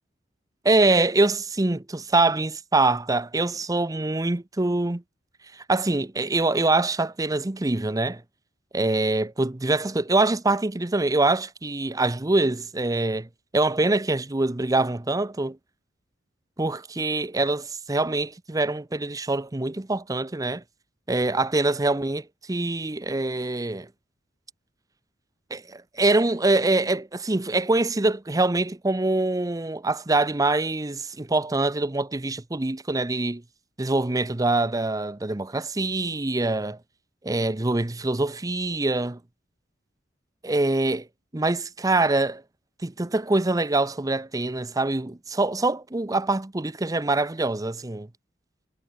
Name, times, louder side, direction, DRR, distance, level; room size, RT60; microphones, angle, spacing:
voice 1, 0.6-5.0 5.7-8.2 8.7-13.3 13.5-15.6 16.6-20.6 21.1-23.9 25.5-33.4 33.8-36.8 37.2-39.2 40.4-41.1 41.3-42.4 42.8-48.1, right 2 dB, 20° right, 0.7 m, -24 dB
head